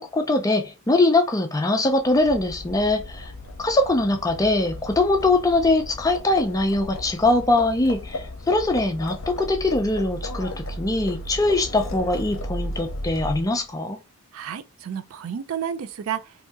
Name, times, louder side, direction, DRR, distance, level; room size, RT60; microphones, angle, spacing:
voice 1, 0.0-3.3 3.6-14.0, left 2 dB, 15° left, 0.4 m, -22 dB
Livestock farm animals working animals, 2.0-13.6, left 1 dB, 60° left, 0.7 m, -35 dB
voice 2, 14.3-16.3, right 8 dB, 65° right, 0.3 m, -31 dB
2.7 x 2.6 x 3.4 m
head